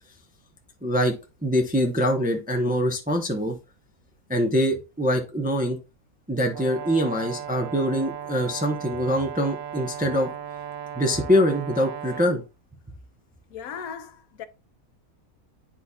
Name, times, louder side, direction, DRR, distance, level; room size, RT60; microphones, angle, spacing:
voice 1, 0.8-1.1 1.4-3.6 4.3-5.8 6.3-10.3 10.9-12.4, equal, 10° right, 0.5 m, -24 dB
Brass instrument, 6.5-12.3, right 9 dB, 65° right, 0.7 m, -36 dB
voice 2, 13.5-14.5, left 7 dB, 80° left, 1.2 m, -37 dB
10.0 x 4.2 x 2.3 m
omnidirectional pair, 1.5 m